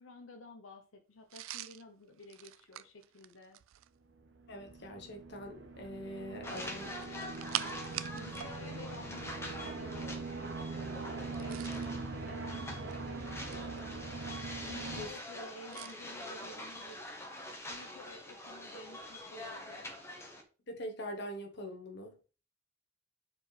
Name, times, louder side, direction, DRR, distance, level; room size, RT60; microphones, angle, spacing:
voice 1, 0.0-3.6 8.1-14.1 14.6-17.0 17.5-19.8, left 2 dB, 80° left, 0.8 m, -52 dB
sound 1, 1.3-4.0 6.4-8.5 8.8-9.0 11.2-11.9 12.7-13.8 15.7-16.0, right 14 dB, 80° right, 0.4 m, -43 dB
sound 2, 4.1-15.1, right 3 dB, 60° right, 1.0 m, -42 dB
voice 2, 4.5-7.0 14.9-15.1 20.7-22.1, equal, 55° left, 1.2 m, -43 dB
sound 3, 6.4-20.4, left 1 dB, 15° left, 1.2 m, -45 dB
7.3 x 4.4 x 3.3 m
head